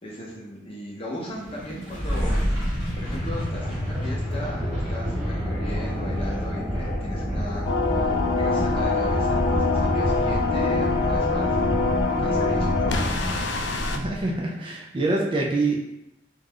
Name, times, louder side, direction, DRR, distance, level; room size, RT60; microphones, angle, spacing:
voice 1, 0.0-2.4 2.6-13.5, equal, 30° left, -3 dB, 0.7 m, -37 dB
sound 1, 1.3-14.4, equal, 10° right, 1.2 m, -29 dB
sound 2, 2.8-13.4, left 1 dB, 60° right, 0.9 m, -32 dB
sound 3, 7.6-14.0, left 4 dB, 70° left, 0.3 m, -25 dB
voice 2, 13.9-15.8, right 2 dB, 30° right, -1 dB, 0.3 m, -25 dB
2.4 x 2.2 x 3.4 m, 0.86 s
head